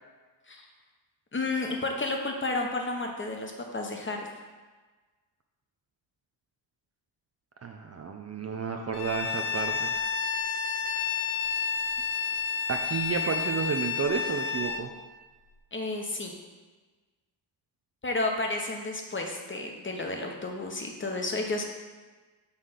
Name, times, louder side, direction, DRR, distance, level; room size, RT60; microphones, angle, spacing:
voice 1, 1.3-4.3 15.7-16.3 18.0-21.6, left 2 dB, 25° left, 2 dB, 0.9 m, -31 dB
voice 2, 7.6-10.1 10.9-11.0 12.7-14.9, right 5 dB, 35° right, 3 dB, 0.5 m, -31 dB
Bowed string instrument, 8.9-14.8, left 6 dB, 85° left, 0.7 m, -30 dB
5.6 x 3.2 x 5.7 m, 1.3 s
cardioid pair, 80°, 48 cm